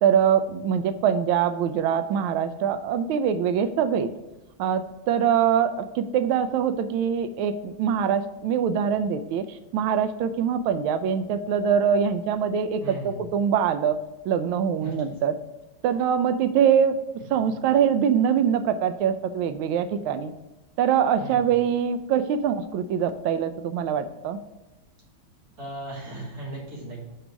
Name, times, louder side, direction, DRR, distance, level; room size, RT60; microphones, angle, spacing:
voice 1, 0.0-4.1 4.6-9.5 9.7-14.0 14.3-15.3 15.8-17.0 17.3-20.3 20.8-24.4, right 8 dB, 85° right, 10 dB, 1.4 m, -23 dB
voice 2, 12.8-13.2 14.8-14.9 17.4-17.5 21.2-21.4 25.6-27.0, right 1 dB, 45° right, -5 dB, 2.8 m, -37 dB
5.1 x 4.7 x 6.0 m, 1.1 s
omnidirectional pair, 2.2 m